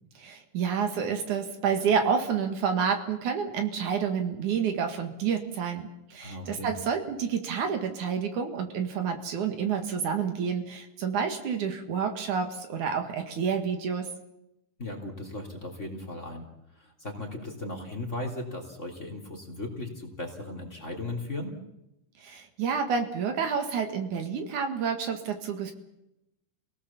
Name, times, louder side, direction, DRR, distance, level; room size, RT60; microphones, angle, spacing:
voice 1, 0.2-14.1 22.2-25.7, right 6 dB, 70° right, 6 dB, 3.3 m, -29 dB
voice 2, 6.2-6.7 14.8-16.5 16.7-21.6, left 2 dB, 20° left, 3 dB, 3.4 m, -37 dB
28.0 x 18.0 x 7.2 m, 0.88 s
omnidirectional pair, 3.7 m